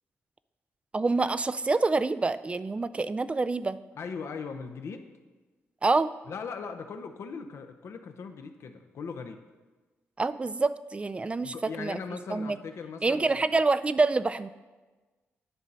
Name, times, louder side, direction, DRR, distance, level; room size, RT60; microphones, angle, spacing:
voice 1, 0.9-3.8 5.8-6.1 10.2-12.0 12.3-12.6 13.0-14.5, right 3 dB, 25° right, 14 dB, 0.3 m, -26 dB
voice 2, 4.0-5.1 6.3-9.4 11.4-13.5, left 5 dB, 65° left, 6 dB, 0.7 m, -39 dB
10.0 x 4.0 x 5.5 m, 1.3 s
cardioid pair, 80°, 5 cm